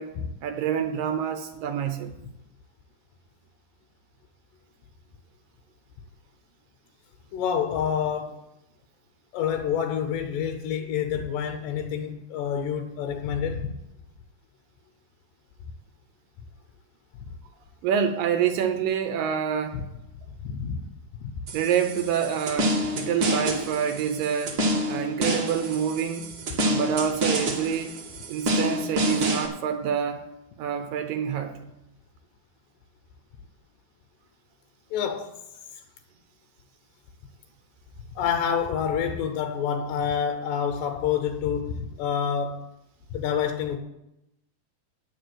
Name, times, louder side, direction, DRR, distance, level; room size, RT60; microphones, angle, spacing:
voice 1, 0.4-2.1 17.8-19.8 21.5-24.6 24.9-26.3 26.6-27.9 28.3-30.2 30.6-31.5, right 8 dB, 75° right, 2.3 m, -27 dB
voice 2, 7.3-8.4 9.3-13.7 19.7-19.8 20.4-20.9 21.2-21.4 34.9-35.4 38.2-42.7 43.1-43.8, left 8 dB, 75° left, 2.3 m, -28 dB
sound 1, 21.5-29.5, equal, 60° right, 1.2 m, -28 dB
9.7 x 7.0 x 7.7 m
omnidirectional pair, 4.3 m